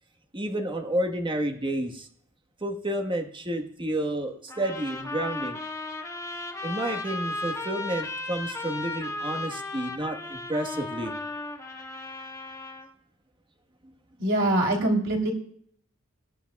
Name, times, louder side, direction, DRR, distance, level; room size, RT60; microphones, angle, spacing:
voice 1, 0.3-2.1 2.6-5.6 6.6-11.1, right 1 dB, 25° right, 4 dB, 1.4 m, -30 dB
sound 1, 4.5-12.9, left 2 dB, 15° left, 1.5 m, -35 dB
voice 2, 14.2-15.3, right 1 dB, 65° right, 0 dB, 3.3 m, -23 dB
22.5 x 10.0 x 2.3 m, 0.63 s
head